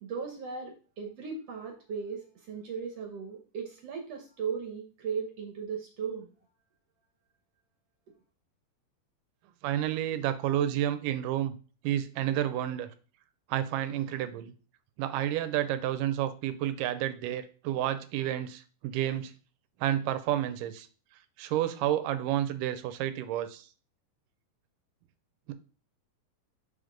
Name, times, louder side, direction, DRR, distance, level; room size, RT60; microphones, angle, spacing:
voice 1, 0.0-6.3, right 6 dB, 65° right, 2 dB, 1.7 m, -37 dB
voice 2, 9.6-11.5 11.8-12.9 13.5-14.5 15.0-19.3 19.8-20.9 21.4-23.7 25.5-25.6, right 12 dB, 85° right, 11 dB, 2.2 m, -30 dB
5.1 x 4.5 x 5.1 m, 0.38 s
omnidirectional pair, 3.8 m